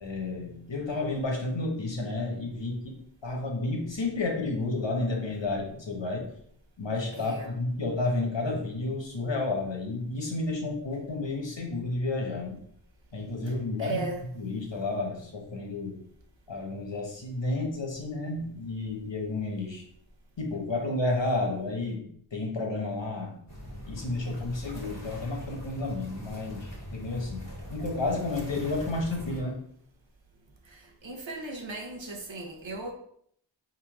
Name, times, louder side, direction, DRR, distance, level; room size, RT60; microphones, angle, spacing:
voice 1, 0.0-6.3 6.8-12.6 13.1-14.0 14.3-16.0 16.5-19.8 20.4-23.4 23.9-29.5, left 2 dB, 75° left, 1.1 m, -31 dB
voice 2, 7.1-7.5 13.8-14.2 29.3-29.4 30.6-32.9, right 3 dB, 85° right, 0.9 m, -37 dB
sound 1, 23.5-29.4, equal, 35° left, 1.6 m, -41 dB
3.7 x 2.7 x 4.7 m
wide cardioid pair, 40°, 44 cm